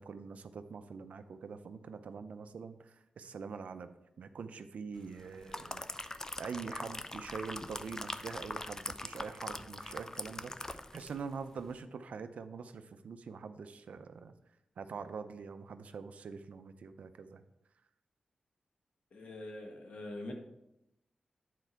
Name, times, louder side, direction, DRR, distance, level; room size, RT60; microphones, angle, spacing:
voice 1, 0.0-14.3 14.8-17.4, right 5 dB, 85° right, 10 dB, 0.5 m, -44 dB
sound 1, 5.2-11.2 11.6-11.7, left 2 dB, 25° left, 0.4 m, -42 dB
voice 2, 19.1-20.3, left 1 dB, 75° left, 2 dB, 1.4 m, -44 dB
9.5 x 4.5 x 4.5 m, 0.88 s
wide cardioid pair, 80°, 2 cm